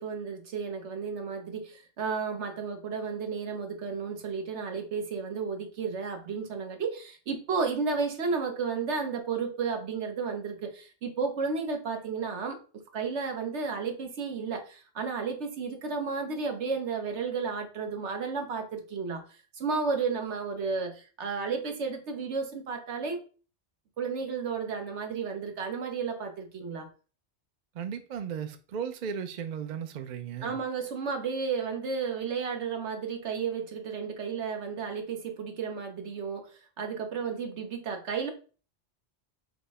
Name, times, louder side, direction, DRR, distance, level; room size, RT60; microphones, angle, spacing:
voice 1, 0.0-19.2 19.6-23.2 24.0-26.9 30.4-38.3, right 5 dB, 80° right, 1.2 m, -33 dB
voice 2, 27.7-30.6, right 7 dB, 55° right, 0.5 m, -36 dB
5.0 x 2.1 x 4.7 m
omnidirectional pair, 1.2 m